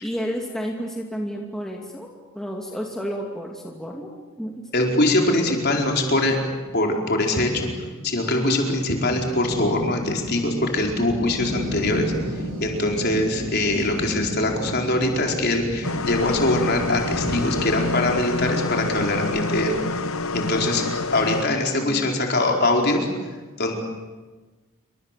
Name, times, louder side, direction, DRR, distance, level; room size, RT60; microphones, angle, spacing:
voice 1, 0.0-4.1 4.4-4.6, equal, ahead, 0 dB, 2.6 m, -31 dB
voice 2, 4.7-6.4 6.7-7.7 8.0-12.1 12.6-19.7 20.3-20.8 21.1-23.1 23.6-23.8, left 2 dB, 45° left, 1 dB, 4.7 m, -22 dB
sound 1, 5.9-21.4, equal, 75° right, 7.8 m, -33 dB
sound 2, 15.8-21.4, left 3 dB, 70° left, 1.0 m, -27 dB
28.5 x 25.0 x 7.7 m, 1.3 s
head